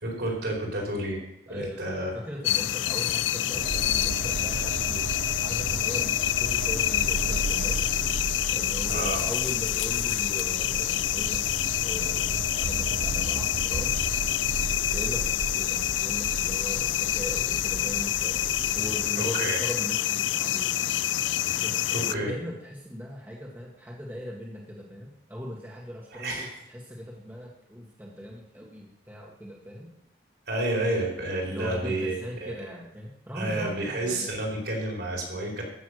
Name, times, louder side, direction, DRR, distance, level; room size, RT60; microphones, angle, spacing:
voice 1, 0.0-2.1 8.8-9.2 19.1-19.6 21.9-22.3 26.1-26.5 30.5-32.1 32.4-32.5 33.3-35.6, right 1 dB, 65° right, -2 dB, 4.7 m, -30 dB
voice 2, 1.5-5.2 5.4-7.9 8.5-11.5 11.8-14.0 14.9-18.4 18.7-20.7 21.6-29.9 31.5-34.4, equal, 10° right, -3 dB, 1.8 m, -39 dB
sound 1, 2.4-22.1, left 13 dB, 80° left, 0.4 m, -27 dB
sound 2, 3.5-19.1, right 3 dB, 85° right, 0.6 m, -35 dB
14.5 x 7.0 x 6.5 m, 0.78 s
head